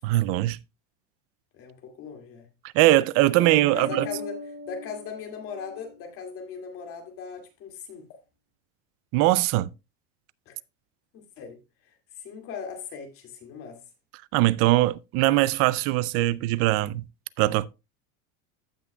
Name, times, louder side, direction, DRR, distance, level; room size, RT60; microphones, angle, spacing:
voice 1, 0.0-0.6 2.7-4.1 9.1-9.7 14.3-17.0 17.4-17.7, right 17 dB, 40° right, 0.4 m, -21 dB
voice 2, 1.5-2.5 3.7-4.4 4.7-8.2 10.5-10.6 11.1-11.6 11.9-13.8, left 6 dB, 40° left, 2.3 m, -39 dB
sound 1, 3.4-6.0, equal, 25° right, 3.2 m, -38 dB
15.5 x 6.1 x 2.3 m
supercardioid pair, 155°, 35 cm